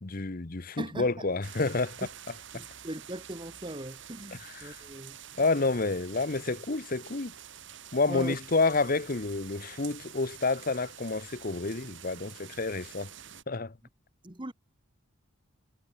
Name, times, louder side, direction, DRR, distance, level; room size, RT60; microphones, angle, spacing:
voice 1, 0.0-2.1 2.5-2.6 4.3-4.8 5.4-7.3 7.9-13.1 13.5-13.7, left 3 dB, 40° left, 0.9 m, -29 dB
voice 2, 0.8-1.3 2.5-5.2 8.1-8.4 14.2-14.5, right 1 dB, 20° right, 1.4 m, -39 dB
sound 1, 1.4-13.4, right 9 dB, 55° right, 3.4 m, -48 dB
head